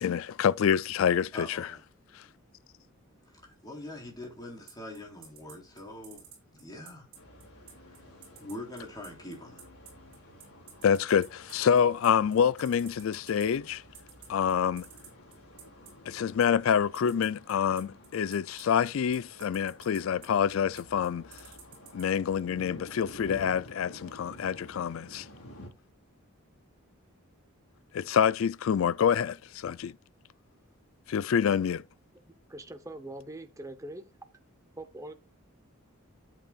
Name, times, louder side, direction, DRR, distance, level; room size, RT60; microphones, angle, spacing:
voice 1, 0.0-1.7 10.8-13.8 14.3-14.9 16.1-21.2 21.9-25.3 27.9-29.9 31.1-31.8, left 7 dB, 65° left, 0.3 m, -27 dB
voice 2, 1.3-1.8 3.2-7.1 7.9-8.0 8.4-9.7, left 1 dB, 20° left, 3.7 m, -43 dB
sound 1, 4.7-22.0, right 8 dB, 45° right, 5.4 m, -50 dB
sound 2, 7.1-25.7, left 1 dB, 85° left, 4.2 m, -51 dB
voice 3, 32.5-34.0 34.8-35.1, right 1 dB, 15° right, 0.8 m, -42 dB
12.0 x 8.2 x 2.4 m
head